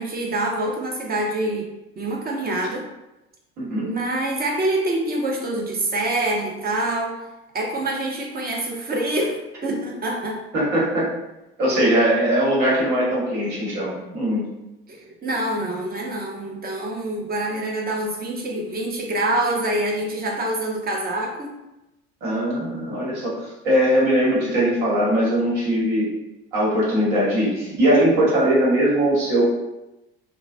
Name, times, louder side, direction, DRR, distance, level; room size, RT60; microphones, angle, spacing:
voice 1, 0.0-1.7 2.0-2.9 3.7-7.2 7.5-10.4 14.9-21.5, right 1 dB, 30° right, -1 dB, 0.7 m, -26 dB
voice 2, 3.6-3.9 10.5-11.1 11.6-14.4 22.2-26.1 26.5-29.4, right 1 dB, 60° right, -6 dB, 1.4 m, -20 dB
3.1 x 2.2 x 2.5 m, 0.97 s
figure-of-eight pair, 60°, 32 cm